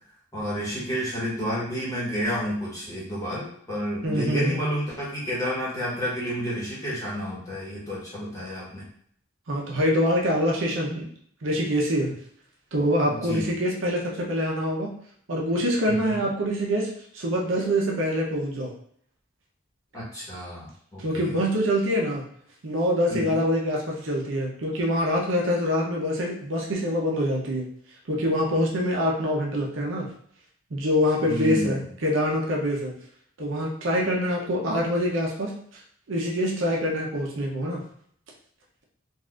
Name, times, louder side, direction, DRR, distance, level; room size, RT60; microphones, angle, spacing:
voice 1, 0.3-8.9 13.1-13.5 15.9-16.3 19.9-21.4 23.1-23.4 31.2-31.9, equal, 15° left, -7 dB, 1.2 m, -30 dB
voice 2, 4.0-4.6 9.5-11.1 11.4-12.1 12.7-14.9 15.3-18.7 21.0-22.2 22.6-27.6 28.1-30.1 30.7-32.9 33.4-35.8 36.1-37.8, equal, 70° right, -1 dB, 0.7 m, -25 dB
4.0 x 2.5 x 2.4 m, 0.63 s
head